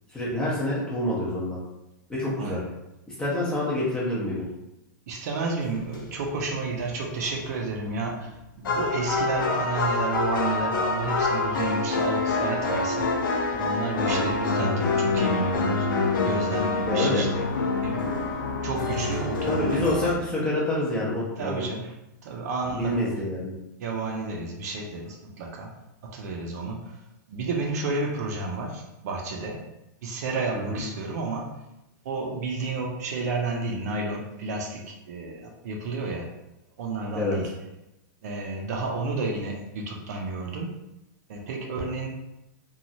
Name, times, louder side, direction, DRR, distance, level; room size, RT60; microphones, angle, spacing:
voice 1, 0.1-1.6 2.1-2.6 3.1-4.4 13.9-14.8 16.8-17.3 19.5-21.6 22.7-23.5 30.5-30.8 37.1-37.4, left 1 dB, 5° left, -7 dB, 0.6 m, -27 dB
voice 2, 5.1-13.1 13.5-17.4 17.8-18.2 18.6-20.0 21.4-21.9 22.2-23.0 23.8-25.7 26.0-26.9 27.3-29.6 30.0-31.6 32.0-36.3 36.8-37.5 38.2-40.7 41.3-42.1, right 3 dB, 55° right, 1 dB, 0.6 m, -31 dB
sound 1, 5.9-6.2 6.8-6.9 8.3-8.4 8.6-20.1, left 3 dB, 85° left, 0.5 m, -26 dB
3.0 x 2.3 x 2.6 m, 0.91 s
supercardioid pair, 165°, 11 cm